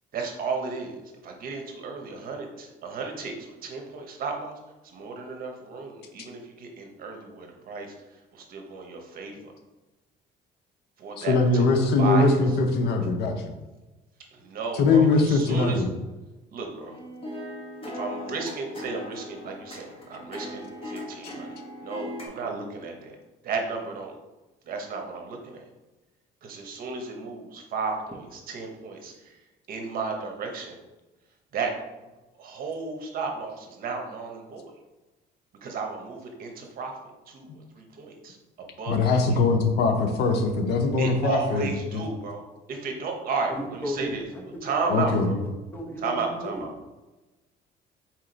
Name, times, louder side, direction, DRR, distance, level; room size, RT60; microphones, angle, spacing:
voice 1, 0.1-4.5 4.8-9.5 11.0-12.4 14.3-15.8 16.5-17.0 17.9-23.2 23.4-24.1 24.6-25.6 26.4-29.4 29.7-30.8 31.5-31.7 32.4-34.7 35.6-37.0 37.3-39.2 41.0-42.4 42.7-44.2 44.6-45.4 46.0-46.7, right 4 dB, 60° right, 2 dB, 0.9 m, -34 dB
voice 2, 11.2-13.5 14.8-15.9 21.2-21.3 38.9-42.0 44.9-45.3, left 3 dB, 75° left, 5 dB, 0.7 m, -22 dB
sound 1, 16.6-22.3, left 1 dB, 35° left, 1.3 m, -39 dB
voice 3, 43.5-46.7, equal, 10° left, 0 dB, 0.9 m, -36 dB
4.5 x 2.9 x 3.9 m, 1.1 s
cardioid pair, 110°, 17 cm